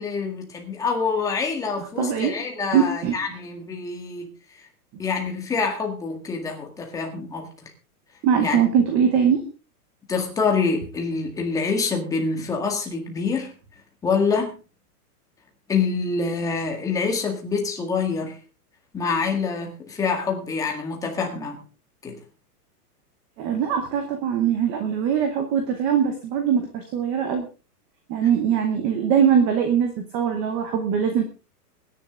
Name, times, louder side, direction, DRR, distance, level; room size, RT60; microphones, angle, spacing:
voice 1, 0.0-4.3 5.0-7.7 8.4-8.6 10.1-13.5 14.0-14.6 15.7-18.4 18.9-21.6 22.0-22.2, left 5 dB, 5° left, 2 dB, 1.8 m, -26 dB
voice 2, 1.8-2.4 2.7-3.2 8.2-9.4 23.4-27.5 28.1-31.2, right 8 dB, 15° right, 6 dB, 0.8 m, -22 dB
23.0 x 10.5 x 3.7 m, 0.33 s
supercardioid pair, 180°, 47 cm